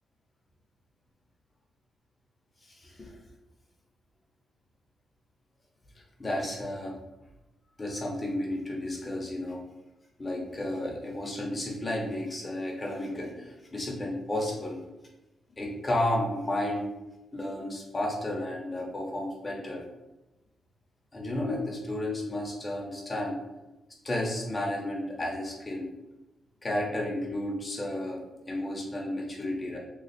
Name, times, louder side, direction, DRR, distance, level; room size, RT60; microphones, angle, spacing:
voice 1, 2.7-3.1 6.2-6.9 7.8-9.6 10.2-14.8 15.6-16.9 17.3-19.8 21.1-23.4 24.0-25.9 26.6-28.2 28.5-29.8, left 1 dB, 20° left, -2 dB, 0.8 m, -32 dB
3.2 x 2.3 x 4.0 m, 1.0 s
wide cardioid pair, 150°, 0 cm